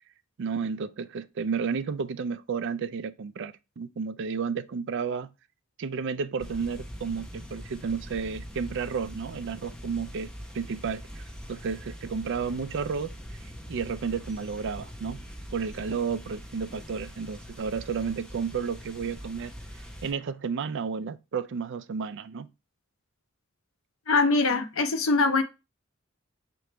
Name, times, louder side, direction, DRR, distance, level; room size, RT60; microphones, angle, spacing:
voice 1, 0.4-5.3 5.8-10.3 10.5-13.4 13.7-15.3 15.5-19.5 20.0-22.5, right 5 dB, 60° right, 0.4 m, -32 dB
sound 1, 6.4-20.1, equal, 5° left, 0.7 m, -43 dB
voice 2, 24.1-25.4, left 3 dB, 90° left, 0.7 m, -23 dB
4.8 x 3.0 x 3.3 m
head